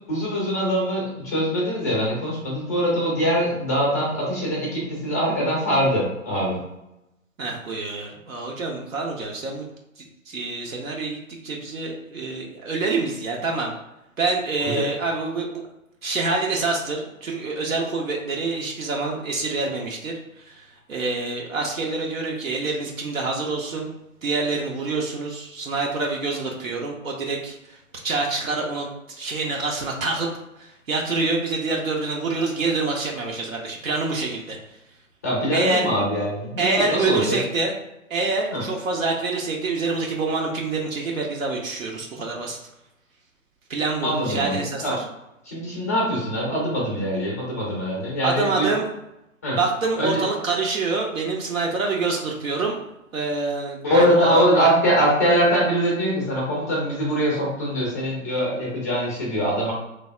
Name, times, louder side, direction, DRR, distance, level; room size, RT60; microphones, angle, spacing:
voice 1, 0.1-6.6 14.6-14.8 35.2-37.4 38.5-38.6 44.0-45.0 45.4-48.7 49.4-49.6 50.0-50.2 53.8-59.7, equal, 15° left, -3 dB, 0.4 m, -23 dB
voice 2, 7.4-9.6 10.0-13.7 14.2-15.6 16.0-23.9 24.2-27.8 28.0-30.3 30.6-34.6 35.5-35.9 36.6-37.7 38.1-42.6 43.7-44.8 48.2-48.9 49.6-52.8 53.1-54.7, right 3 dB, 75° right, -1 dB, 0.7 m, -26 dB
3.2 x 2.0 x 2.3 m, 0.89 s
figure-of-eight pair, 125°, 41 cm